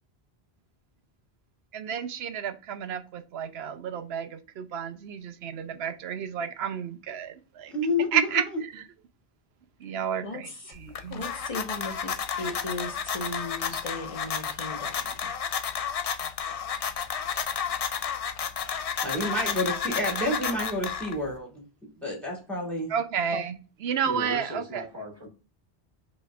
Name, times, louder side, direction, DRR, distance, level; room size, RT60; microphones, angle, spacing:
voice 1, 1.7-7.7 8.1-8.8 9.8-11.2 22.9-24.8, right 8 dB, 80° right, 10 dB, 0.9 m, -31 dB
voice 2, 7.7-8.3 19.0-21.6 22.0-22.9, left 1 dB, ahead, -2 dB, 2.1 m, -29 dB
voice 3, 10.2-10.7 11.1-15.1, left 2 dB, 35° left, 4 dB, 1.0 m, -37 dB
sound 1, 10.7-21.4, left 7 dB, 55° left, 0.4 m, -32 dB
voice 4, 24.0-25.3, equal, 25° right, -1 dB, 1.4 m, -38 dB
5.3 x 3.2 x 2.3 m, 0.35 s
omnidirectional pair, 1.0 m